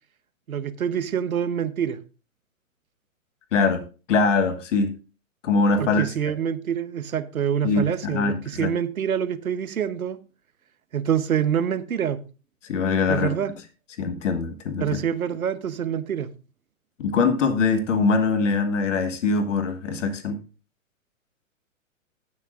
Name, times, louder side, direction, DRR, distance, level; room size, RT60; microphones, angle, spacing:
voice 1, 0.5-2.0 5.8-10.2 10.9-12.2 13.1-13.5 14.8-16.3, right 8 dB, 85° right, 1.1 m, -26 dB
voice 2, 3.5-3.8 4.1-4.9 5.4-6.1 7.6-8.7 12.6-13.3 14.0-15.0 17.0-20.4, left 4 dB, 60° left, 1.5 m, -22 dB
19.0 x 6.6 x 2.5 m
hypercardioid pair, 130°, 41 cm